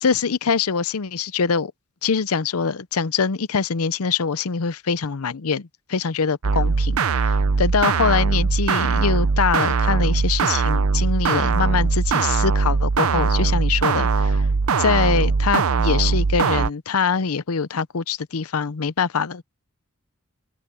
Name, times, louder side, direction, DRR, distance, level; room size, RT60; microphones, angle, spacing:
voice 1, 0.0-1.7 2.0-14.4 14.8-19.4, left 5 dB, 90° left, 0.7 m, -24 dB
sound 1, 6.4-16.7, right 4 dB, 80° right, 0.6 m, -20 dB
open air
head